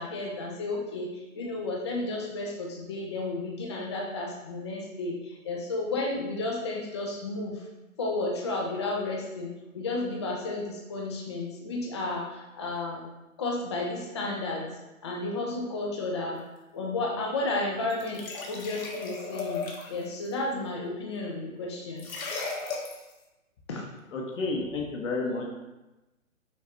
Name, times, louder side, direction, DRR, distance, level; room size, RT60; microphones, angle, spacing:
voice 1, 0.0-7.6 8.0-13.0 13.4-14.7 15.0-16.4 16.7-22.1 23.7-23.9, left 2 dB, 25° left, -2 dB, 0.4 m, -32 dB
pour water in pewter mug, 17.9-20.0 22.0-23.1, left 4 dB, 90° left, 1.3 m, -36 dB
voice 2, 24.1-25.4, left 3 dB, 65° left, 0 dB, 1.1 m, -30 dB
5.7 x 3.2 x 2.9 m, 1.0 s
hypercardioid pair, 145°, 41 cm